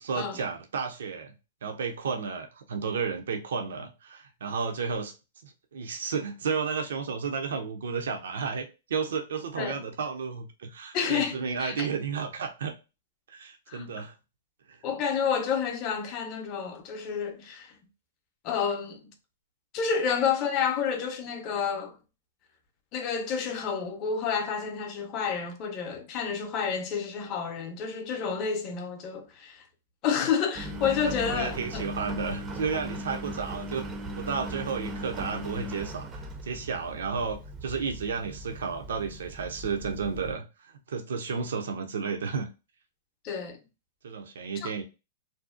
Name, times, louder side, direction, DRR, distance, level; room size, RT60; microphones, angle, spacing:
voice 1, 0.0-1.3 1.6-5.1 5.4-12.7 13.3-14.1 14.7-14.8 31.0-33.9 34.1-42.5 44.0-44.8, right 5 dB, 80° right, 0.5 m, -32 dB
voice 2, 10.9-11.9 13.7-13.8 14.8-17.8 18.4-19.1 19.7-22.0 22.9-29.6 30.0-31.9 43.2-43.6 44.6-44.7, left 6 dB, 35° left, 0.6 m, -30 dB
Engine, 30.6-40.3, right 1 dB, 20° right, 0.4 m, -38 dB
2.6 x 2.0 x 2.4 m
hypercardioid pair, 135°, 0 cm